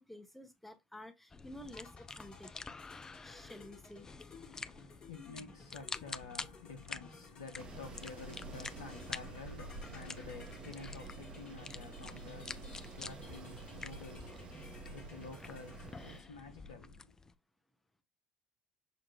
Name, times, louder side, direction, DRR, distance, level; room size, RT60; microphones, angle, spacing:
voice 1, 0.0-2.5 3.2-4.1, left 1 dB, 5° left, 0.9 m, -51 dB
sound 1, 1.3-17.4, left 4 dB, 25° left, 0.4 m, -49 dB
sound 2, 1.7-15.9, left 4 dB, 40° left, 1.3 m, -57 dB
voice 2, 3.0-3.5 4.5-17.1, left 4 dB, 85° left, 0.6 m, -51 dB
Wind, 7.6-16.2, right 2 dB, 40° right, 0.9 m, -49 dB
6.2 x 2.5 x 3.0 m
hypercardioid pair, 60°, 2 cm